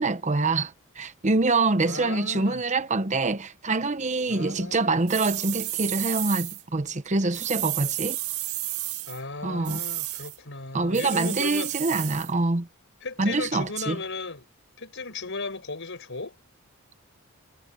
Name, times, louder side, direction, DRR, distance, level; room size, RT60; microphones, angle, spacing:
voice 1, 0.0-8.2 9.4-9.8 10.7-12.7 13.2-14.0, right 3 dB, 35° right, 0.9 m, -25 dB
voice 2, 1.8-2.6 4.3-5.0 9.1-11.7 13.0-14.5 14.8-16.4, left 3 dB, 60° left, 5.6 m, -36 dB
sound 1, 5.1-6.6 7.3-9.2 9.6-10.4 10.9-12.3, right 15 dB, 90° right, 2.0 m, -32 dB
head